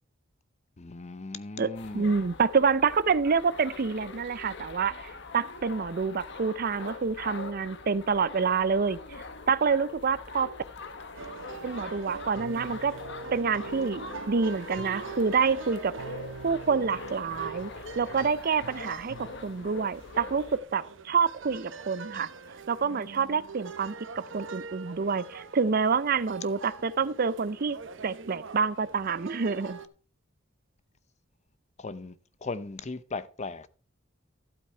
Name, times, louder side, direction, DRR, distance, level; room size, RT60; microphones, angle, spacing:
voice 1, 0.8-2.1 31.8-33.7, left 3 dB, 35° left, 0.7 m, -38 dB
voice 2, 1.6-9.0 9.5-10.5 11.6-12.9 13.3-15.9 16.4-17.7 18.0-19.2 19.4-22.3 22.7-24.0 24.3-27.8 28.0-29.8, right 5 dB, 50° right, 0.5 m, -27 dB
sound 1, 1.7-20.6, left 3 dB, 60° left, 1.3 m, -43 dB
sound 2, 11.1-29.9, right 4 dB, 65° right, 0.9 m, -43 dB
12.0 x 8.2 x 4.4 m
head